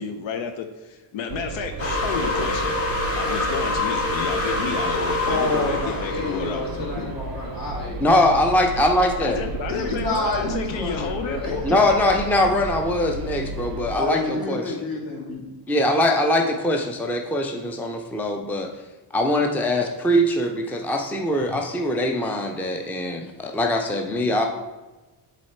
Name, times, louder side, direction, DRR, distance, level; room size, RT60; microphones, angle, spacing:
voice 1, 0.0-7.2 9.2-11.6, left 7 dB, 85° left, 6 dB, 0.7 m, -31 dB
sound 1, 1.3-14.0, right 4 dB, 55° right, 0.5 m, -33 dB
sound 2, 1.8-7.1, left 2 dB, 30° left, 1.6 m, -26 dB
voice 2, 5.2-8.0 9.7-11.8 13.9-15.4, left 2 dB, 50° left, -3 dB, 2.3 m, -28 dB
voice 3, 8.0-9.4 11.6-14.7 15.7-18.7 19.1-24.5, left 1 dB, 5° left, 3 dB, 0.5 m, -22 dB
7.6 x 4.1 x 4.3 m, 1.2 s
cardioid pair, 115°, 44 cm